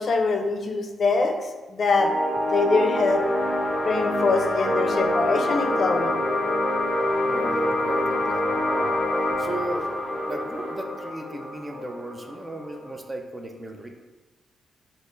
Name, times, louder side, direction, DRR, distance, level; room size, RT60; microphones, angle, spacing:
voice 1, 0.0-1.4 1.7-2.1 2.5-3.3 3.8-6.2, left 3 dB, 55° left, 4 dB, 0.4 m, -23 dB
sound 1, 1.9-13.0, left 1 dB, 15° left, 0.8 m, -26 dB
voice 2, 7.2-9.0 9.4-9.9 10.3-13.9, right 1 dB, 25° right, 4 dB, 0.4 m, -36 dB
3.9 x 2.4 x 3.2 m, 1.2 s
cardioid pair, 70°, 0 cm